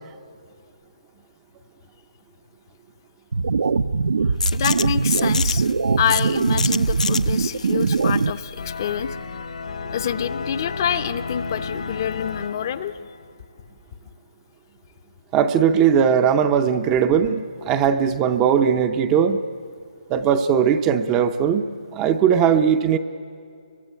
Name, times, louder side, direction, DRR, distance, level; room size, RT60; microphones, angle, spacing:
sound 1, 3.3-8.3, right 4 dB, 70° right, 0.7 m, -21 dB
sound 2, 4.4-9.9, left 5 dB, 85° left, 0.9 m, -29 dB
voice 1, 4.5-5.7 6.0-9.2 9.9-13.0, left 9 dB, 30° left, 12 dB, 0.7 m, -27 dB
sound 3, 8.6-13.4, left 5 dB, 60° left, 1.2 m, -33 dB
voice 2, 15.3-19.4 20.1-23.0, right 8 dB, 15° right, 9 dB, 0.6 m, -19 dB
25.5 x 23.0 x 10.0 m, 2.3 s
hypercardioid pair, 170°, 4 cm